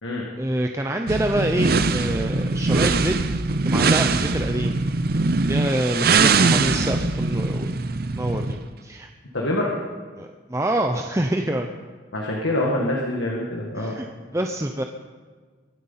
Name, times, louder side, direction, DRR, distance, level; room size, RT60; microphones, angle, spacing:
voice 1, 0.4-3.2 3.6-4.8 5.4-7.8 8.2-9.1 10.2-11.7 13.8-14.8, right 1 dB, 15° right, 4 dB, 0.6 m, -26 dB
sound 1, 1.1-8.6, right 3 dB, 50° right, 0.7 m, -22 dB
voice 2, 9.3-9.7 12.1-14.0, left 1 dB, 75° left, -2 dB, 2.0 m, -25 dB
23.5 x 9.4 x 5.8 m, 1.5 s
head